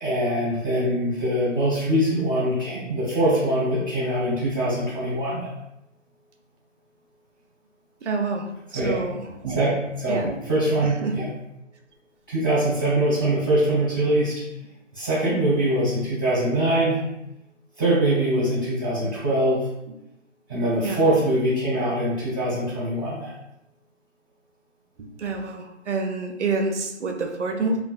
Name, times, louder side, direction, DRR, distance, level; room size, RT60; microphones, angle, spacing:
voice 1, 0.0-5.5 8.7-9.0 9.5-9.7 10.0-11.3 12.3-14.4 14.9-17.0 17.8-19.6 20.5-23.3, right 1 dB, 15° left, -14 dB, 0.8 m, -23 dB
voice 2, 8.0-8.5 8.7-9.6 10.1-10.3 11.0-11.2 20.8-21.0 25.2-27.8, right 3 dB, 65° right, 4 dB, 0.5 m, -27 dB
2.4 x 2.2 x 2.3 m, 0.87 s
hypercardioid pair, 175°, 38 cm